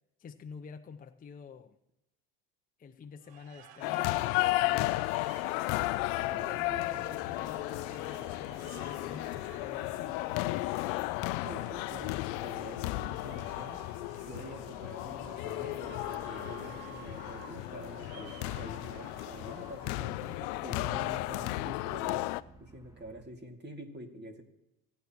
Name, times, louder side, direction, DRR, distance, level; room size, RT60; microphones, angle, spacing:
voice 1, 0.2-1.8 2.8-5.1 6.2-10.2, left 6 dB, 20° left, 7 dB, 0.6 m, -48 dB
sound 1, 3.2-21.2, right 11 dB, 60° right, 1.0 m, -55 dB
sound 2, 3.8-22.4, left 19 dB, 70° left, 0.6 m, -34 dB
voice 2, 6.3-7.1 11.4-13.8 14.3-22.2 22.6-24.4, right 1 dB, 25° right, 4 dB, 2.3 m, -47 dB
sound 3, 6.4-23.2, right 2 dB, 5° right, 2.0 m, -55 dB
28.5 x 9.6 x 3.0 m, 0.89 s
supercardioid pair, 90°, 43 cm